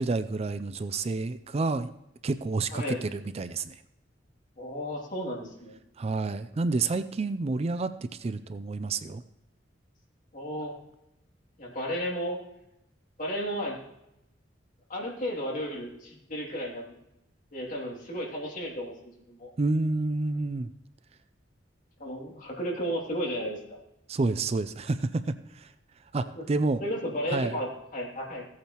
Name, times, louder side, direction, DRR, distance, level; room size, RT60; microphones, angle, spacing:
voice 1, 0.0-1.9 2.2-3.8 6.0-9.2 19.6-20.7 24.1-25.7 26.1-26.8 27.3-27.5, right 3 dB, 35° right, 11 dB, 0.4 m, -29 dB
voice 2, 4.6-5.8 10.3-10.7 11.6-12.4 13.2-13.8 14.9-16.9 17.5-19.5 22.0-23.8 26.4-26.5 26.8-28.4, equal, 45° left, -1 dB, 2.6 m, -33 dB
15.5 x 8.6 x 3.0 m, 0.84 s
head